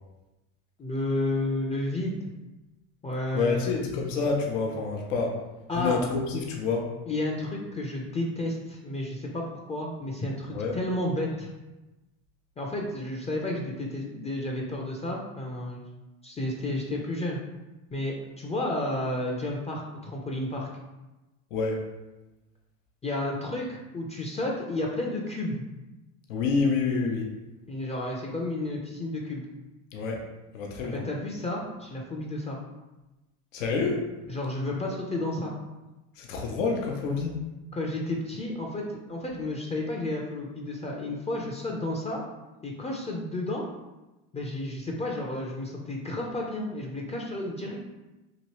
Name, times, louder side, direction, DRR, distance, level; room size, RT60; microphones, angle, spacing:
voice 1, 0.8-2.2 3.0-3.8 5.7-6.0 7.1-11.5 12.6-15.8 16.2-17.4 17.9-20.7 23.0-25.6 27.7-29.5 30.8-32.6 34.3-35.5 37.7-42.2 42.6-43.6 44.3-47.8, left 1 dB, 15° left, -1 dB, 0.4 m, -31 dB
voice 2, 3.3-5.4 5.7-6.9 10.5-10.8 21.5-21.8 26.3-27.3 29.9-30.2 30.5-31.0 33.5-34.0 36.2-37.4, left 4 dB, 90° left, 1 dB, 0.6 m, -27 dB
3.0 x 2.6 x 2.9 m, 1.0 s
supercardioid pair, 90°, 38 cm